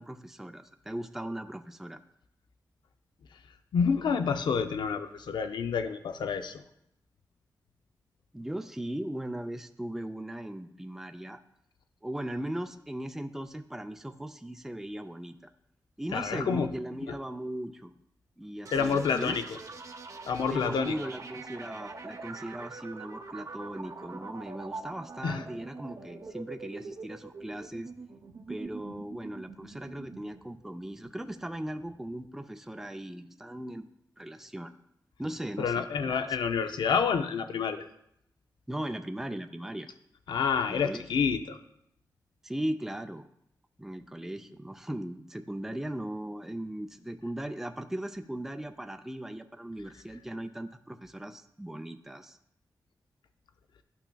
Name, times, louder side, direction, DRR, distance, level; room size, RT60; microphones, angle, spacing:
voice 1, 0.0-2.0 8.3-11.4 12.0-15.4 16.0-17.9 18.4-19.4 20.5-27.9 28.5-33.8 34.2-34.8 35.2-36.4 38.7-39.9 40.7-41.0 42.4-43.2 43.8-52.4, right 1 dB, 5° right, 7 dB, 0.4 m, -38 dB
voice 2, 3.7-6.6 16.1-16.8 17.1-17.2 18.7-19.6 20.3-21.0 25.2-25.4 35.6-37.8 40.3-41.6, left 6 dB, 85° left, 9 dB, 0.5 m, -28 dB
sound 1, 18.7-32.3, right 3 dB, 50° right, 0.7 m, -44 dB
11.5 x 5.7 x 2.3 m, 0.78 s
cardioid pair, 80°, 8 cm